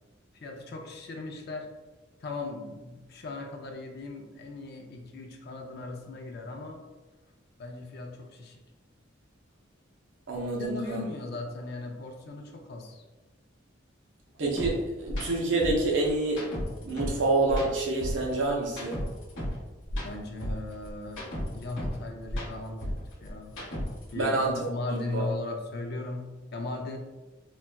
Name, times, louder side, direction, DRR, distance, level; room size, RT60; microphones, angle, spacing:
voice 1, 0.3-1.7 2.2-6.8 7.6-8.6 10.5-13.0 20.0-21.2 21.5-23.6 24.1-27.0, left 2 dB, 55° left, 3 dB, 0.4 m, -38 dB
voice 2, 10.3-11.0 14.4-16.4 16.8-19.0 24.1-24.7 25.1-25.2, right 2 dB, 75° right, -2 dB, 0.7 m, -27 dB
sound 1, 14.6-14.7 15.1-15.3 15.6-17.2 17.5-19.6 19.9-22.0 22.3-24.1, equal, 80° left, 1.0 m, -34 dB
3.9 x 2.2 x 2.2 m, 1.2 s
head